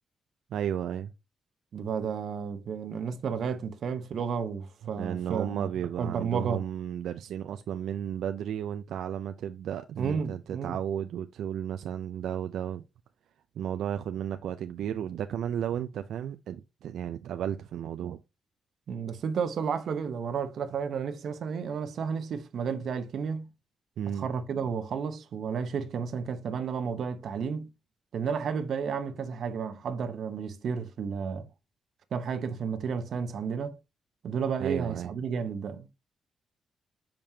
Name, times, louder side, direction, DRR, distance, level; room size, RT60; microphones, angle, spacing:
voice 1, 0.5-1.1 4.8-12.8 13.6-18.2 24.0-24.3 34.6-35.1, right 9 dB, 85° right, 0.5 m, -33 dB
voice 2, 1.7-5.7 6.0-6.6 10.0-10.8 18.9-23.5 24.1-27.7 28.1-31.5 32.1-33.8 34.2-35.9, right 6 dB, 55° right, 0.9 m, -32 dB
7.3 x 5.1 x 2.8 m
wide cardioid pair, 165°, 0 cm